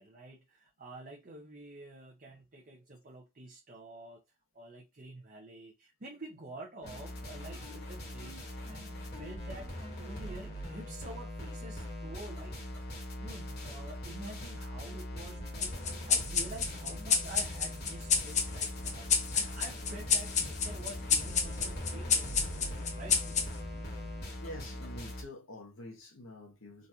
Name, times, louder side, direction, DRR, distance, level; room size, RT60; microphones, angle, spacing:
voice 1, 0.0-4.2 4.5-8.4 8.7-9.7 10.0-19.1 19.3-22.5 22.9-23.2, right 2 dB, 40° right, 0.7 m, -48 dB
sound 1, 6.8-25.2, left 1 dB, 50° left, 1.3 m, -41 dB
sound 2, 15.6-24.5, left 6 dB, 35° left, 0.6 m, -31 dB
voice 2, 24.4-26.9, left 1 dB, 80° left, 1.2 m, -47 dB
3.9 x 2.5 x 2.7 m
head